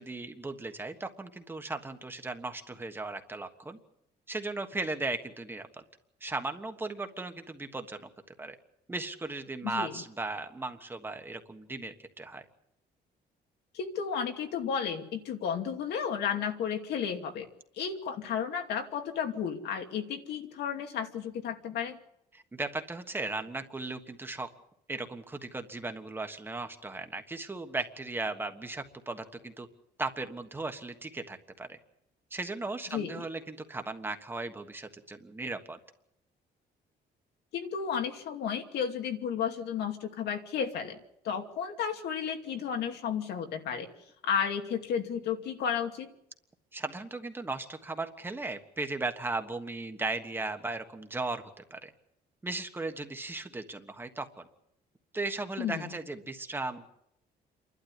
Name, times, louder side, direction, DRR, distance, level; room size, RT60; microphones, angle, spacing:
voice 1, 0.0-3.8 4.3-5.8 6.2-8.1 8.4-8.6 8.9-12.4 22.3-24.5 24.9-29.7 30.0-31.8 32.3-35.8 46.7-51.9 52.4-54.4 55.1-56.9, right 3 dB, 15° right, 7 dB, 1.4 m, -37 dB
voice 2, 9.6-10.0 13.7-17.5 17.8-22.0 32.9-33.3 37.5-41.0 41.2-43.9 44.2-46.1 55.6-55.9, left 7 dB, 85° left, 5 dB, 2.7 m, -33 dB
29.0 x 12.0 x 9.8 m, 0.78 s
cardioid pair, 175°, 17 cm